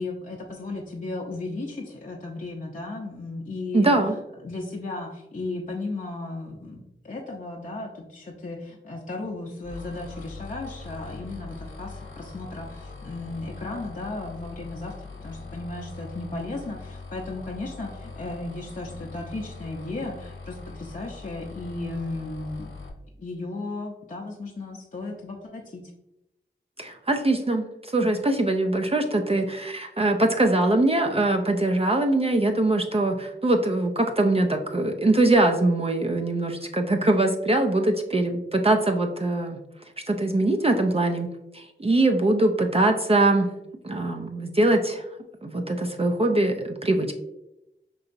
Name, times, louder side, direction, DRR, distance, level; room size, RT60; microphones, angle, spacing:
voice 1, 0.0-4.0 4.4-22.7 23.2-25.8, left 2 dB, 40° left, -2 dB, 0.6 m, -35 dB
voice 2, 3.7-4.1 26.8-39.6 40.1-41.3 41.5-43.5 43.8-45.0 45.4-47.1, right 2 dB, 30° right, 3 dB, 0.4 m, -22 dB
sound 1, 9.6-22.9, left 3 dB, 75° left, 0.9 m, -41 dB
5.3 x 2.8 x 2.6 m, 0.89 s
cardioid pair, 40°, 21 cm